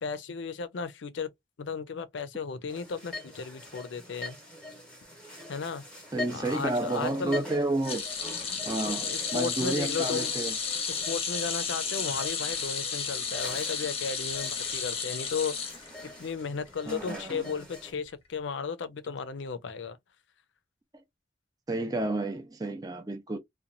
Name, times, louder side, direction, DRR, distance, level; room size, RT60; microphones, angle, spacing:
voice 1, 0.0-1.3 1.6-4.4 5.5-5.8 6.3-7.4 8.8-10.3 10.9-15.7 16.2-20.0, left 5 dB, 80° left, 0.5 m, -35 dB
sound 1, 2.7-17.9, left 1 dB, 5° left, 0.9 m, -44 dB
voice 2, 6.1-8.0 8.7-10.6 16.9-17.4 21.7-23.4, right 2 dB, 20° right, 0.4 m, -31 dB
sound 2, 7.8-16.3 16.7-16.9 18.1-18.2, left 6 dB, 30° left, 0.7 m, -33 dB
2.9 x 2.2 x 2.5 m
head